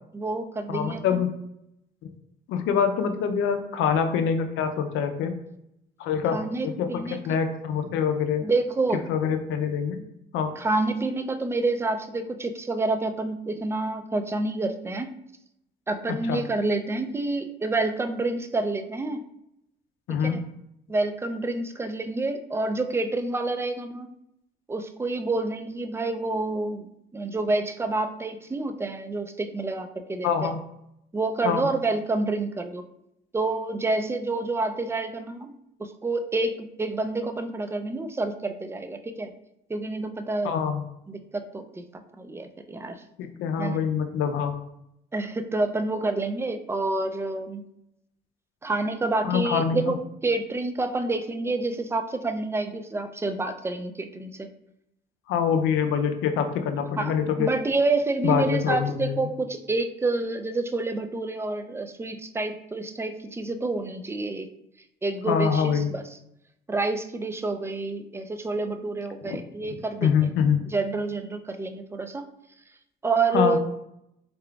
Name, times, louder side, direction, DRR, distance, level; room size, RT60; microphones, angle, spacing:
voice 1, 0.1-1.2 6.3-7.4 8.4-9.0 10.6-15.2 15.9-19.2 20.1-20.4 20.9-24.1 24.7-30.5 31.1-32.8 33.3-39.3 39.7-40.6 41.1-43.0 43.6-43.8 45.1-47.6 48.6-54.5 57.0-64.5 65.0-66.1 66.7-70.3 70.7-72.3 73.0-73.6, right 3 dB, 15° right, 8 dB, 0.3 m, -28 dB
voice 2, 0.7-1.3 2.5-5.3 6.0-8.5 9.1-10.0 10.3-10.5 16.1-16.4 20.1-20.4 30.2-30.6 31.4-31.7 40.4-40.8 43.2-44.5 49.2-49.8 55.3-57.5 58.2-59.2 65.3-65.9 69.2-70.6 73.3-73.6, left 7 dB, 90° left, 7 dB, 0.4 m, -25 dB
3.6 x 3.5 x 2.3 m, 0.80 s
cardioid pair, 90°, 20 cm